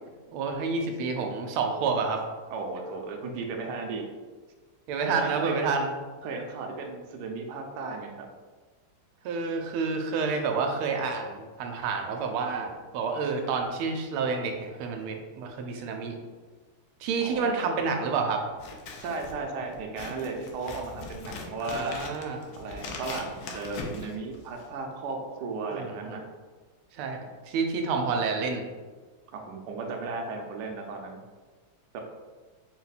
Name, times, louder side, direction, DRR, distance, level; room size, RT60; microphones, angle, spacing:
voice 1, 0.3-2.2 4.9-5.9 9.2-16.2 17.0-18.4 21.6-22.5 25.7-26.2 26.9-28.6, right 4 dB, 90° right, 4 dB, 1.5 m, -29 dB
voice 2, 2.5-4.0 5.1-5.6 6.2-8.2 17.2-17.5 19.0-21.9 22.6-26.2 29.3-31.2 31.9-32.0, right 4 dB, 70° right, 2 dB, 1.0 m, -35 dB
Scissors, 18.5-24.8, left 3 dB, 80° left, 0.9 m, -41 dB
4.2 x 2.1 x 4.0 m, 1.4 s
omnidirectional pair, 2.3 m